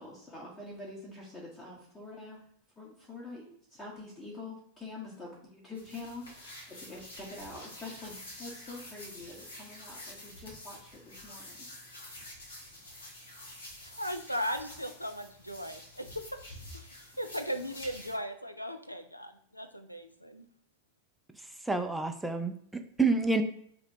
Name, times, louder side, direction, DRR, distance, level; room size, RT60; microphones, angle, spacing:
voice 1, 0.0-2.4 2.8-11.6, left 2 dB, 20° left, -5 dB, 1.0 m, -45 dB
sound 1, 5.7-18.2, left 1 dB, 75° left, 1.2 m, -48 dB
voice 2, 13.8-20.5, equal, 90° left, 7 dB, 0.4 m, -38 dB
voice 3, 21.7-23.4, right 3 dB, 5° right, 6 dB, 0.4 m, -28 dB
2.9 x 2.9 x 4.4 m, 0.69 s
figure-of-eight pair, 90°, 0 cm